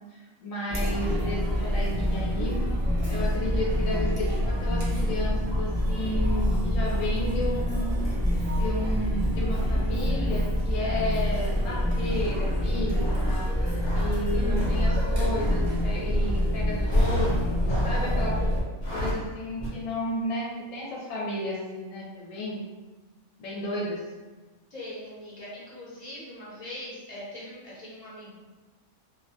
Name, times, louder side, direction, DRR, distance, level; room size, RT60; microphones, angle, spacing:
voice 1, 0.1-2.7 3.1-7.9 8.5-13.5 13.9-18.4 18.9-22.7 23.4-24.0, left 1 dB, 90° left, -4 dB, 1.0 m, -33 dB
Chatter, 0.7-18.6, equal, 40° right, 0.5 m, -26 dB
sound 1, 7.1-16.4 16.8-18.3 18.7-19.3 19.6-19.7, equal, 65° left, 1.0 m, -35 dB
voice 2, 24.7-28.3, left 1 dB, 35° left, -8 dB, 0.9 m, -41 dB
2.5 x 2.2 x 2.6 m, 1.3 s
omnidirectional pair, 1.4 m